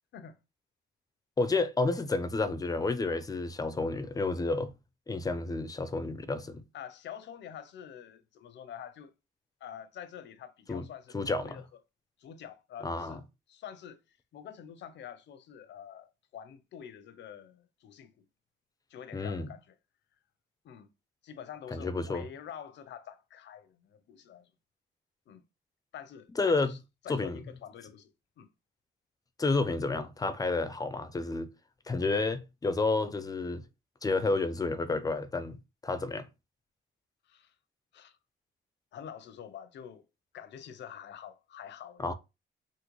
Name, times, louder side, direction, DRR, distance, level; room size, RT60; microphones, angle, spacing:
voice 1, 1.4-4.7 5.1-6.6 10.7-10.9 11.1-11.6 12.8-13.2 19.1-19.5 21.7-22.3 26.4-26.7 27.1-27.4 29.4-31.5 31.9-33.6 34.0-35.6 35.8-36.3 42.0-42.1, left 3 dB, 20° left, 0.5 m, -30 dB
voice 2, 6.7-9.1 9.6-11.6 12.2-13.2 13.5-18.3 18.9-19.7 20.6-20.9 21.2-24.5 25.3-25.4 25.9-26.8 27.0-28.5 37.3-37.5 37.9-38.2 38.9-40.1 40.3-42.1, left 9 dB, 65° left, 0.6 m, -47 dB
3.7 x 2.1 x 3.0 m
cardioid pair, 90°, 20 cm